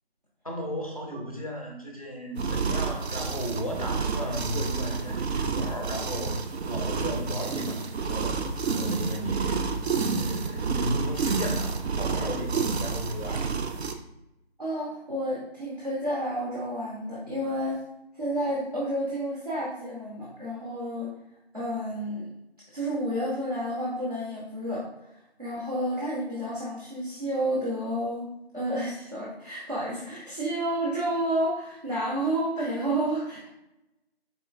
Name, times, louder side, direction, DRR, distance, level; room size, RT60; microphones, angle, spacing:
voice 1, 0.4-13.5, equal, 35° left, 0 dB, 0.5 m, -35 dB
sound 1, 2.3-13.9, right 5 dB, 85° right, 0.5 m, -29 dB
voice 2, 14.6-17.8 18.1-21.1 21.5-22.3 22.7-25.1 25.4-33.5, right 1 dB, 40° right, -7 dB, 0.7 m, -30 dB
4.2 x 3.2 x 2.4 m, 0.88 s
figure-of-eight pair, 180°, 31 cm